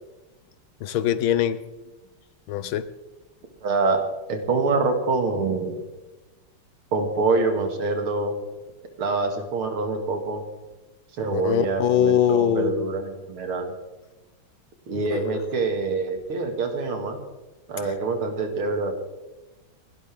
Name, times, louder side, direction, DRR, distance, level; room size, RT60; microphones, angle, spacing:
voice 1, 0.8-1.6 2.5-2.8 11.3-12.9 15.1-15.4, left 10 dB, 75° left, 14 dB, 1.5 m, -22 dB
voice 2, 3.6-4.0 4.3-5.8 6.9-8.3 9.0-10.4 11.2-13.7 14.9-17.2 17.7-19.0, right 3 dB, 80° right, 5 dB, 2.8 m, -25 dB
30.0 x 12.0 x 3.6 m, 1.1 s
omnidirectional pair, 2.3 m